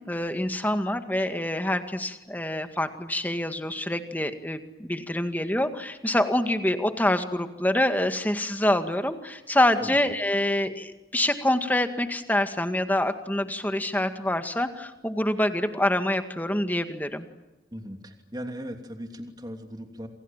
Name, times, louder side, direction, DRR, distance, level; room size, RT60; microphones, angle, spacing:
voice 1, 0.0-17.2, left 1 dB, 10° left, 8 dB, 2.0 m, -26 dB
voice 2, 17.7-20.1, equal, 20° right, 4 dB, 2.9 m, -38 dB
28.5 x 28.0 x 7.4 m, 1.1 s
head